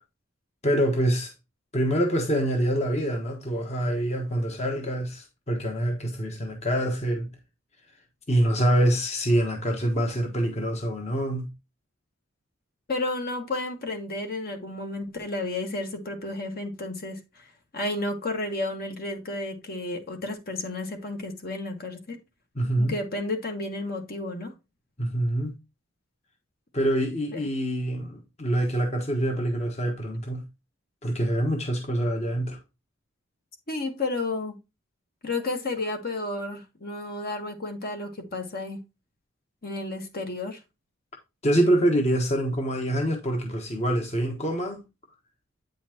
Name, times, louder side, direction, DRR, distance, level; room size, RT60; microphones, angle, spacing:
voice 1, 0.6-1.3 1.7-7.3 8.3-11.5 22.5-23.0 25.0-25.6 26.7-30.4 31.0-32.6 41.4-44.8, right 1 dB, 30° left, 1.2 m, -25 dB
voice 2, 12.9-17.4 17.7-22.2 22.8-24.5 27.3-27.4 33.7-34.6 35.2-38.8 39.6-40.6, left 2 dB, 50° left, 1.4 m, -32 dB
8.7 x 5.6 x 2.8 m
head